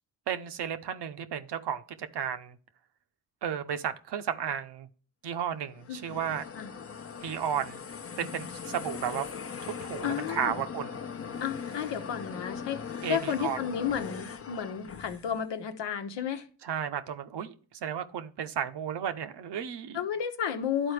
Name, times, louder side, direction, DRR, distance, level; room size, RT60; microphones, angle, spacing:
voice 1, 0.3-2.6 3.4-4.9 5.2-6.5 7.2-7.8 8.2-9.3 9.6-11.0 13.0-13.6 16.6-17.5 17.8-20.0, right 8 dB, 65° right, 0.9 m, -33 dB
sound 1, 5.7-15.4, left 6 dB, 30° left, 0.8 m, -40 dB
voice 2, 5.9-6.2 6.5-6.7 10.0-10.6 11.4-12.8 13.1-16.5 19.9-20.9, left 8 dB, 75° left, 1.0 m, -32 dB
11.0 x 4.2 x 3.3 m
supercardioid pair, 45°, 44 cm